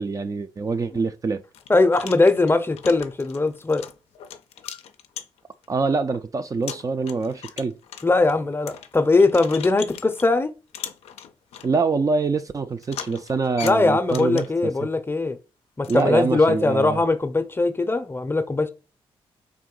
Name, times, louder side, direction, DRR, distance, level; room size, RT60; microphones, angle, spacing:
voice 1, 0.0-1.4 5.7-7.8 11.6-14.7 15.9-17.0, right 4 dB, 35° right, 0.4 m, -25 dB
sound 1, 0.9-1.0 1.5-5.7 6.1-6.2 6.6-10.3 10.7-11.7 12.8-14.7 15.8-16.0, left 9 dB, 90° left, 0.4 m, -39 dB
voice 2, 1.7-3.9 8.0-10.5 13.6-15.4 15.8-18.7, left 3 dB, 20° left, 0.6 m, -20 dB
3.6 x 2.6 x 3.8 m
cardioid pair, 65°, 10 cm